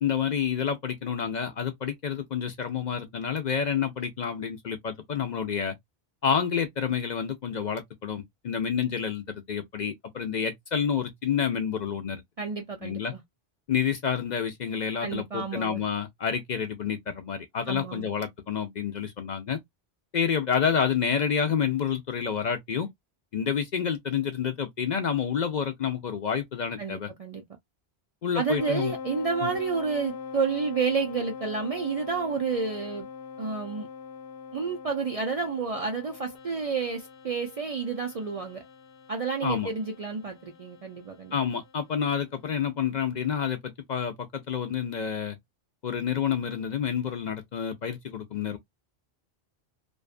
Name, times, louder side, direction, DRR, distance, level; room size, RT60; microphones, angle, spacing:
voice 1, 0.0-5.7 6.2-12.2 12.8-13.1 13.7-19.6 20.1-22.9 23.3-27.1 28.2-28.9 29.4-29.5 39.4-39.7 41.3-45.4 45.8-48.6, left 7 dB, 55° left, 0.5 m, -29 dB
voice 2, 12.4-13.2 15.0-15.8 17.7-18.1 26.8-27.4 28.3-33.1 33.4-33.9 34.5-38.6 39.1-41.3, right 5 dB, 55° right, 0.4 m, -30 dB
sound 1, 28.6-41.7, left 6 dB, 85° left, 0.9 m, -42 dB
2.6 x 2.3 x 2.4 m
omnidirectional pair, 1.1 m